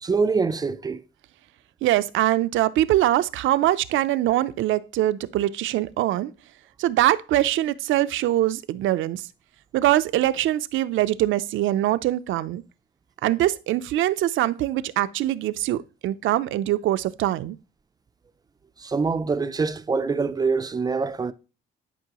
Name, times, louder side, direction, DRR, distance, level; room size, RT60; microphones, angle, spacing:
voice 1, 0.0-1.0 18.8-21.3, right 4 dB, 20° right, 0.4 m, -24 dB
voice 2, 1.8-6.3 6.8-9.3 9.7-12.6 13.2-17.6, right 14 dB, 75° right, 0.5 m, -23 dB
11.0 x 5.4 x 2.9 m
cardioid pair, 145°, 20 cm